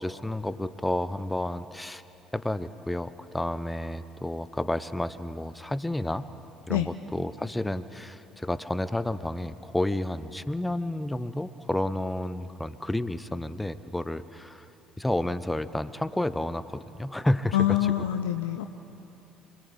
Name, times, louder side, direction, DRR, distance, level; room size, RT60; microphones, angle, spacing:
voice 1, 0.0-2.0 2.3-6.3 6.7-14.7 15.0-17.9, left 1 dB, 10° left, 13 dB, 0.9 m, -31 dB
voice 2, 17.5-18.7, left 12 dB, 75° left, 7 dB, 0.6 m, -25 dB
26.5 x 20.0 x 8.9 m, 2.9 s
figure-of-eight pair, 55°, 0 cm